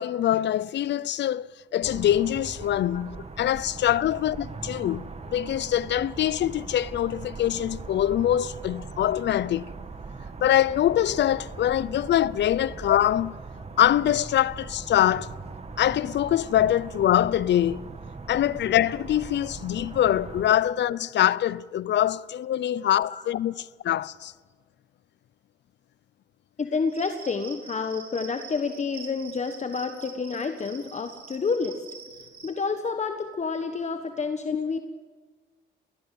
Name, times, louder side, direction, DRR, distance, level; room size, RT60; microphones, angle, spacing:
voice 1, 0.0-1.5 1.7-9.7 10.4-13.3 13.8-15.4 15.8-17.9 18.3-24.3, left 11 dB, 60° left, 0.6 m, -24 dB
sound 1, 1.8-20.4, right 4 dB, 30° right, 2.1 m, -40 dB
voice 2, 26.6-31.8 32.4-34.8, left 4 dB, 35° left, 1.4 m, -29 dB
Cricket, 26.9-32.5, right 5 dB, 50° right, 5.4 m, -45 dB
20.0 x 19.0 x 7.6 m
cardioid pair, 90°, 20 cm